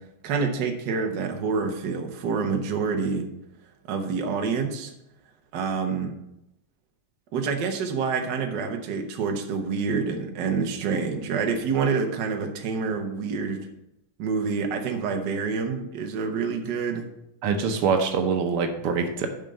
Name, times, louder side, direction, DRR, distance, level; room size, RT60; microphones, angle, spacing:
voice 1, 0.2-3.3 3.9-4.9 5.5-6.1 7.3-13.6 14.2-17.1, right 5 dB, 60° right, 4 dB, 1.5 m, -27 dB
voice 2, 17.4-19.3, right 5 dB, 80° right, 6 dB, 1.8 m, -24 dB
7.4 x 5.3 x 6.7 m, 0.81 s
omnidirectional pair, 2.4 m